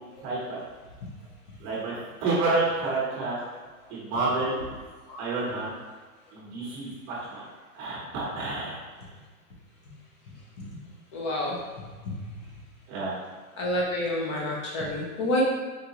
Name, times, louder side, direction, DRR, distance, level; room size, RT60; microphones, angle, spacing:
voice 1, 0.2-0.6 1.6-1.9 2.2-3.4 3.9-4.7 5.2-5.7 6.3-7.4 7.7-8.8 12.9-13.2, right 3 dB, 30° right, -7 dB, 0.8 m, -29 dB
voice 2, 11.1-11.6 13.6-15.4, left 1 dB, 25° left, -3 dB, 0.3 m, -29 dB
3.8 x 2.1 x 2.8 m, 1.4 s
hypercardioid pair, 140°, 44 cm